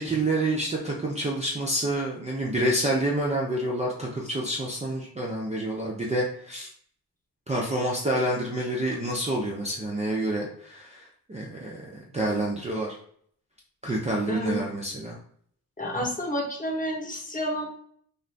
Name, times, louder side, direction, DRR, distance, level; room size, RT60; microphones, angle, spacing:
voice 1, 0.0-6.7 7.5-13.0 13.8-15.2, right 1 dB, 20° right, -3 dB, 0.5 m, -28 dB
voice 2, 14.3-14.7 15.8-17.7, equal, 20° left, -1 dB, 0.9 m, -30 dB
2.5 x 2.4 x 3.2 m, 0.62 s
cardioid pair, 100°, 39 cm